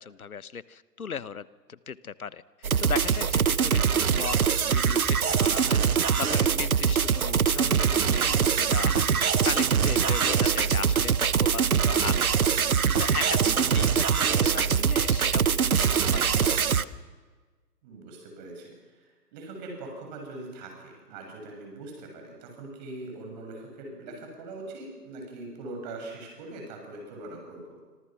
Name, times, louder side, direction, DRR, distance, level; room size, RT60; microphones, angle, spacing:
voice 1, 0.0-2.4 2.8-4.4 4.7-5.8 6.2-12.4 13.0-16.9, left 6 dB, 60° left, 17 dB, 1.1 m, -37 dB
sound 1, 2.6-16.8, right 7 dB, 60° right, 1.1 m, -23 dB
voice 2, 13.5-13.9 17.8-27.8, right 2 dB, 25° right, 2 dB, 7.6 m, -42 dB
27.5 x 26.0 x 6.2 m, 1.4 s
figure-of-eight pair, 140°, 49 cm